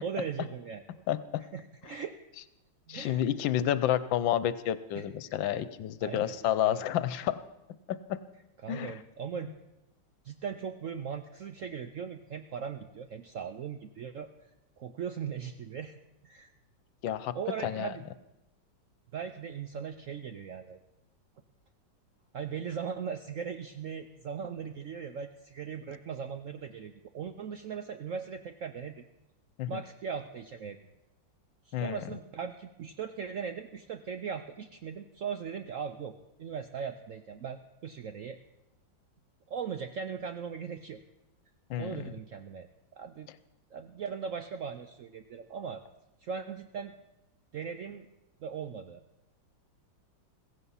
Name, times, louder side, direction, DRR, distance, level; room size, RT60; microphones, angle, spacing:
voice 1, 0.0-1.0 1.4-2.2 2.9-3.3 4.9-5.0 6.0-6.8 8.6-9.5 10.2-14.3 14.8-15.9 16.2-16.5 17.3-18.0 19.1-20.8 22.3-29.1 29.7-30.8 31.7-38.4 39.5-41.0 41.8-42.7 42.9-43.3 43.7-45.8 46.2-46.9 47.5-48.1 48.4-49.0, right 7 dB, 70° right, 8 dB, 0.7 m, -39 dB
voice 2, 1.1-1.4 2.9-7.4 7.9-8.2 8.7-8.9 17.0-17.3 17.6-17.9 29.6-29.8 31.7-32.0 41.7-42.1, left 11 dB, 80° left, 15 dB, 1.5 m, -30 dB
16.0 x 15.5 x 5.5 m, 0.93 s
omnidirectional pair, 2.1 m